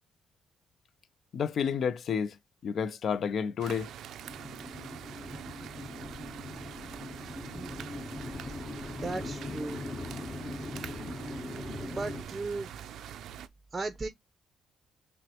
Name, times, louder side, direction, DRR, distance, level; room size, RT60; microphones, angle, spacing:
voice 1, 1.3-2.4 2.6-3.9, left 7 dB, 60° left, 0.4 m, -30 dB
sound 1, 3.6-13.5, right 9 dB, 75° right, 0.3 m, -44 dB
sound 2, 4.3-12.2, left 2 dB, 40° left, 1.2 m, -40 dB
voice 2, 7.2-7.9 8.9-9.8 11.5-12.7 13.7-14.1, right 3 dB, 20° right, 0.5 m, -37 dB
5.8 x 2.0 x 2.9 m
cardioid pair, 90°, 0 cm